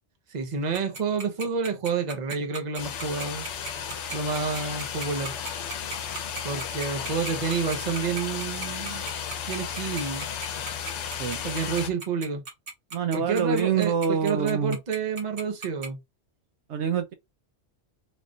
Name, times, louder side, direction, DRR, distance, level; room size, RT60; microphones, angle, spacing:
voice 1, 0.3-3.5 4.1-5.3 6.4-9.0 9.5-10.3 11.4-12.4 13.1-16.0, right 5 dB, 40° right, 0.9 m, -29 dB
Tick-tock, 0.7-15.9, right 4 dB, 90° right, 1.7 m, -36 dB
sound 1, 2.8-11.9, left 8 dB, 75° left, 1.0 m, -34 dB
voice 2, 12.9-14.8 16.7-17.1, right 7 dB, 75° right, 0.9 m, -26 dB
3.4 x 2.4 x 3.8 m
omnidirectional pair, 1.2 m